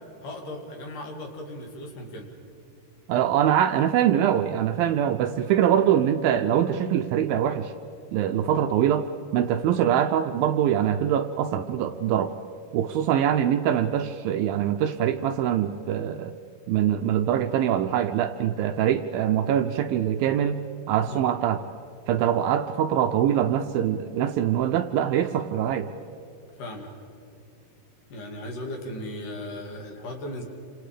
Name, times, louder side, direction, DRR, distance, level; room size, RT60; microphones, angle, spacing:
voice 1, 0.2-2.3 21.1-21.3 26.6-26.9 28.1-30.4, left 1 dB, 55° left, 2 dB, 3.7 m, -37 dB
voice 2, 3.1-7.7 8.1-9.1 9.3-12.3 12.7-16.4 16.7-20.6 20.9-21.6 22.1-25.9, right 10 dB, 80° right, 8 dB, 2.2 m, -23 dB
28.5 x 27.0 x 5.1 m, 2.8 s
omnidirectional pair, 4.6 m